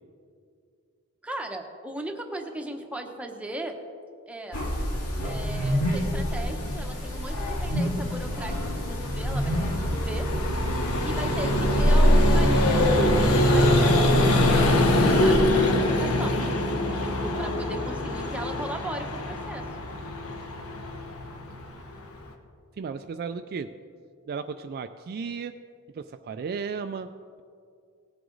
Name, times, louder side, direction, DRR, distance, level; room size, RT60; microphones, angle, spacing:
voice 1, 1.2-3.8 4.3-4.6 5.2-10.3 11.0-16.4 16.9-19.6, right 1 dB, 5° right, 3 dB, 0.9 m, -38 dB
sound 1, 4.5-15.4, equal, 85° left, 2.1 m, -26 dB
Vehicle, 7.6-22.3, left 1 dB, 70° left, 1.1 m, -25 dB
voice 2, 22.8-23.7 24.3-25.6 25.9-27.1, right 5 dB, 45° right, 9 dB, 0.3 m, -34 dB
17.5 x 7.8 x 3.9 m, 2.3 s
head